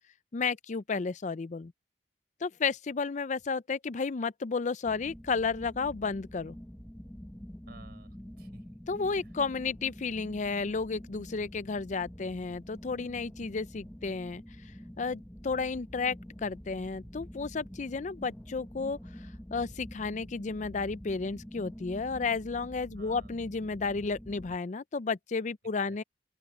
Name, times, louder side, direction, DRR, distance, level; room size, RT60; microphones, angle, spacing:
voice 1, 0.3-1.7 2.4-6.6 8.9-14.4 15.0-19.0 19.5-26.0, left 4 dB, 45° left, 0.5 m, -32 dB
sound 1, 4.8-24.6, equal, 10° left, 1.1 m, -47 dB
voice 2, 7.7-8.7 9.2-9.4 23.0-23.4 25.8-26.0, right 2 dB, 60° right, 4.5 m, -55 dB
open air
head